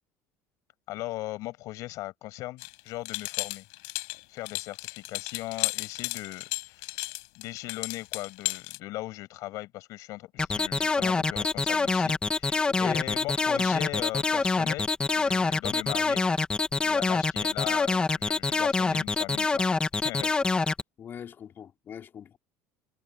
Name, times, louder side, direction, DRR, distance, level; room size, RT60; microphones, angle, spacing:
voice 1, 0.9-3.6 4.3-7.1 7.4-14.9 15.2-16.3 16.9-19.6 20.0-20.3, left 18 dB, 60° left, 7.6 m, -38 dB
sound 1, 2.6-8.8, left 35 dB, 80° left, 5.8 m, -34 dB
sound 2, 10.4-20.8, left 4 dB, 15° left, 2.1 m, -25 dB
voice 2, 12.7-13.0 21.0-22.4, left 8 dB, 35° left, 5.2 m, -41 dB
cardioid pair, 145°, 6 cm